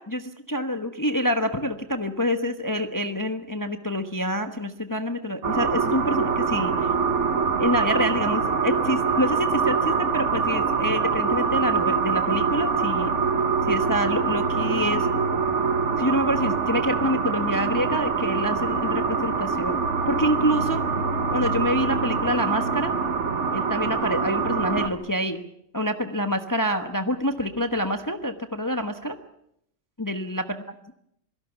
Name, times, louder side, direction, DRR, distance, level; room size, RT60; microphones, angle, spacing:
voice 1, 0.0-6.9 7.6-13.1 13.7-15.1 16.0-19.8 20.1-20.8 21.3-22.9 23.5-25.4 25.7-29.2 30.0-30.4, equal, 15° left, 7 dB, 1.1 m, -27 dB
sound 1, 5.4-24.9, right 5 dB, 60° right, 1.6 m, -24 dB
27.0 x 18.0 x 7.1 m, 0.74 s
omnidirectional pair, 1.5 m